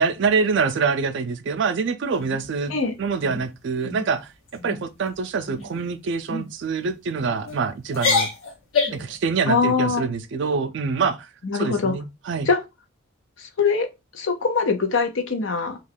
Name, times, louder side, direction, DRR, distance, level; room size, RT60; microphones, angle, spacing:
voice 1, 0.0-4.3 4.6-8.3 8.9-11.3 11.6-12.5, right 5 dB, 60° right, 0.4 m, -25 dB
sound 1, 2.2-2.8 3.2-3.5 3.8-4.1 4.5-4.8 5.5-5.8 6.3-6.5 7.2-7.6 7.9-9.1, left 4 dB, 90° left, 0.9 m, -26 dB
voice 2, 9.4-10.1 11.4-11.9 12.5-12.6 13.4-13.9 14.1-15.8, left 4 dB, 65° left, 0.6 m, -22 dB
2.3 x 2.2 x 3.2 m
head